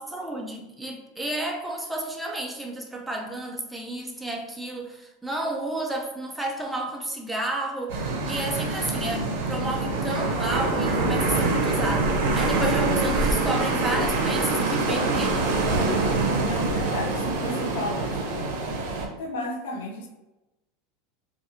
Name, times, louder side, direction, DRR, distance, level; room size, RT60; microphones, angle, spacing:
voice 1, 0.0-15.5, right 1 dB, 5° right, 0 dB, 0.3 m, -31 dB
sound 1, 7.9-19.1, right 2 dB, 65° right, 0.6 m, -25 dB
voice 2, 16.4-18.6 19.2-20.1, left 1 dB, 70° left, 3 dB, 0.5 m, -33 dB
2.9 x 2.3 x 2.7 m, 1.0 s
supercardioid pair, 175°, 0 cm